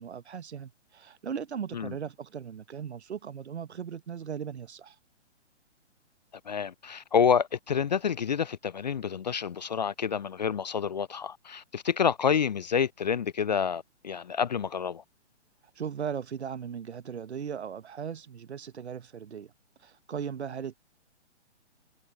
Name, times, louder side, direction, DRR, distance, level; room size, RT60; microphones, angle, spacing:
voice 1, 0.0-5.0 15.8-19.5 19.8-20.7, right 7 dB, 65° right, 1.0 m, -38 dB
voice 2, 6.5-15.0, left 7 dB, 40° left, 0.4 m, -28 dB
figure-of-eight pair, 130°, 36 cm